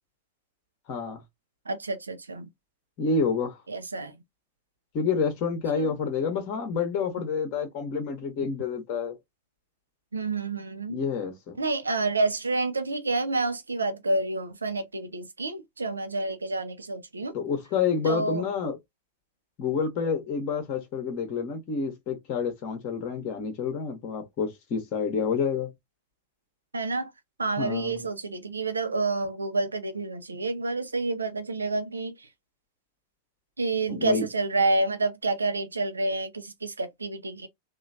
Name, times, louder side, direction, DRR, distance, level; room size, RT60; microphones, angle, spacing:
voice 1, 0.9-1.2 3.0-3.6 4.9-9.2 10.9-11.6 17.3-18.8 19.6-25.7 27.6-28.0 33.9-34.2, left 5 dB, 40° left, 0.9 m, -28 dB
voice 2, 1.7-2.5 3.7-4.2 5.7-6.0 10.1-11.0 11.6-17.4 18.0-18.5 26.7-27.1 27.4-32.3 33.6-37.5, right 3 dB, 75° right, 0.6 m, -29 dB
3.0 x 2.4 x 2.5 m
figure-of-eight pair, 90°, 0 cm